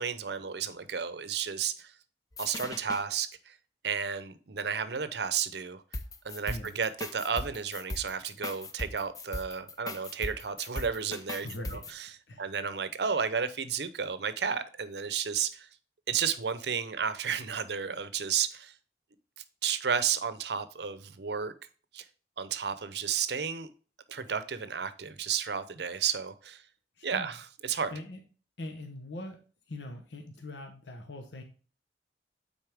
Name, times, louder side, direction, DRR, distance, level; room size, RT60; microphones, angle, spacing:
voice 1, 0.0-1.9 2.4-3.5 3.8-5.8 6.2-15.7 16.1-18.7 19.6-21.5 21.9-22.0 22.4-23.7 24.1-26.6 27.0-27.9, right 7 dB, 65° right, 0.7 m, -32 dB
sound 1, 2.3-3.0 5.9-11.9, left 2 dB, 20° left, 0.6 m, -39 dB
voice 2, 11.4-12.0 12.3-12.4 27.0-27.3 27.9-28.2 28.6-29.4 29.7-31.4, left 1 dB, 80° left, 1.0 m, -42 dB
9.0 x 4.2 x 3.5 m
head